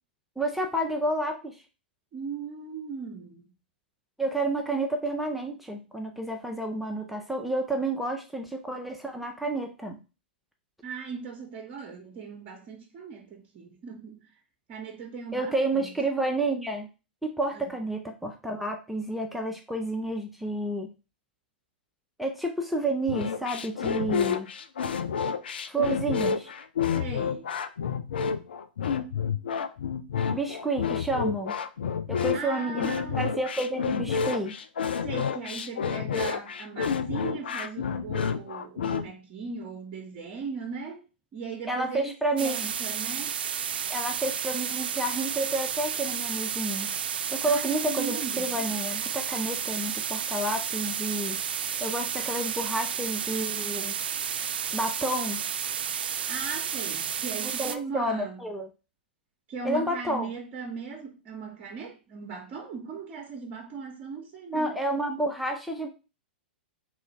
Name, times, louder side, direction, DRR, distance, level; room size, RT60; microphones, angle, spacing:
voice 1, 0.4-1.6 4.2-10.0 15.3-16.9 17.2-20.9 22.2-24.5 25.7-26.5 30.3-31.6 32.1-34.5 41.7-42.7 43.9-46.9 47.3-51.4 51.8-54.0 54.7-55.4 57.6-58.7 59.6-60.3 64.5-65.9, right 1 dB, ahead, 0.4 m, -30 dB
voice 2, 2.1-3.5 10.8-14.3 14.7-15.9 17.5-17.7 26.9-27.5 32.1-33.2 35.0-41.0 41.3-43.3 47.4-48.5 56.3-58.4 59.5-64.8, right 5 dB, 35° right, 0.8 m, -38 dB
sound 1, 23.1-39.0, left 6 dB, 70° left, 0.4 m, -29 dB
sound 2, 42.4-57.8, right 8 dB, 65° right, 0.3 m, -31 dB
3.0 x 2.3 x 4.1 m
figure-of-eight pair, 105°, 6 cm